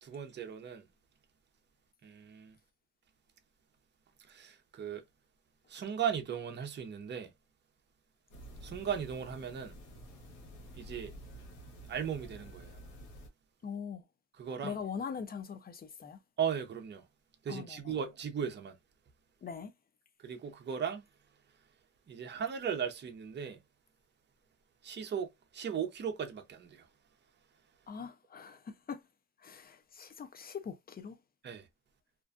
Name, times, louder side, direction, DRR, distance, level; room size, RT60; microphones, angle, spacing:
voice 1, 0.0-0.9 2.0-2.6 4.3-5.0 5.7-7.3 8.6-9.7 10.8-11.1 11.9-12.8 14.4-14.8 16.4-17.0 17.4-18.7 20.2-21.0 22.1-23.6 24.8-26.9 31.4-31.7, right 8 dB, 35° right, 0.6 m, -37 dB
sound 1, 8.3-13.3, right 1 dB, 80° left, 1.0 m, -50 dB
voice 2, 13.6-14.1 14.6-16.2 17.5-17.9 19.4-19.7 27.9-29.0 29.4-31.2, left 6 dB, 30° left, 0.5 m, -42 dB
2.5 x 2.2 x 2.4 m
cardioid pair, 90°, 30 cm